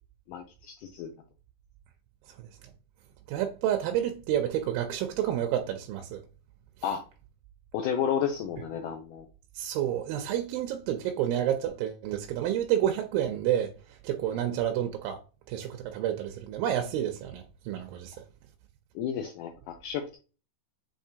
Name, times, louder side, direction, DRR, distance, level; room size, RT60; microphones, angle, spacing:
voice 1, 0.3-1.1 6.8-7.0 7.7-9.3 14.3-14.4 19.0-20.2, left 8 dB, 80° left, 1.9 m, -32 dB
voice 2, 3.3-6.2 9.6-13.7 14.0-15.2 15.5-18.2, right 11 dB, 80° right, 2.3 m, -29 dB
6.6 x 2.9 x 2.7 m
omnidirectional pair, 4.2 m